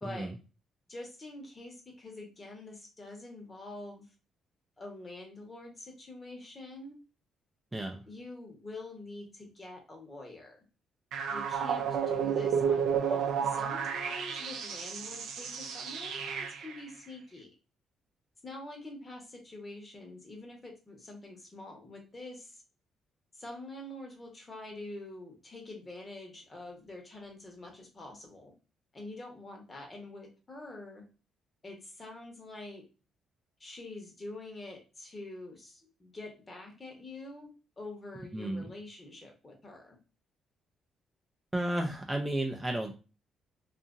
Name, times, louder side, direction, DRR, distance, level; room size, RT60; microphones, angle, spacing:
voice 1, 0.9-4.1 4.8-6.9 8.1-10.6 11.3-17.5 18.4-22.6 23.3-28.5 28.9-31.0 31.6-32.8 33.6-37.5 37.8-40.0, left 2 dB, 30° left, 0 dB, 1.0 m, -46 dB
voice 2, 7.7-8.0 38.3-38.7 41.5-42.9, right 1 dB, 10° right, 2 dB, 0.4 m, -32 dB
sound 1, 11.1-16.8, right 7 dB, 80° right, 0.4 m, -32 dB
2.7 x 2.5 x 2.5 m, 0.33 s
cardioid pair, 90°, 0 cm